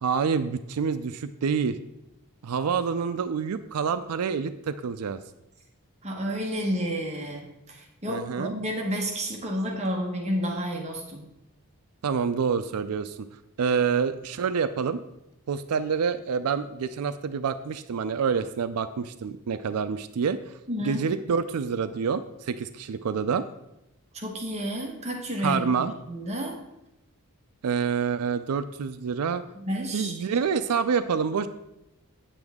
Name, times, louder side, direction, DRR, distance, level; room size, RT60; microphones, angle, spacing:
voice 1, 0.0-1.8 2.4-5.2 8.1-8.5 12.0-13.3 13.6-15.0 15.5-23.5 25.4-25.9 27.6-29.4 29.9-31.5, right 6 dB, 85° right, 11 dB, 0.4 m, -27 dB
voice 2, 6.0-11.3 20.7-21.0 24.1-25.8 26.1-26.6 29.6-30.1, equal, 30° right, 1 dB, 1.1 m, -30 dB
8.9 x 7.9 x 3.6 m, 0.89 s
head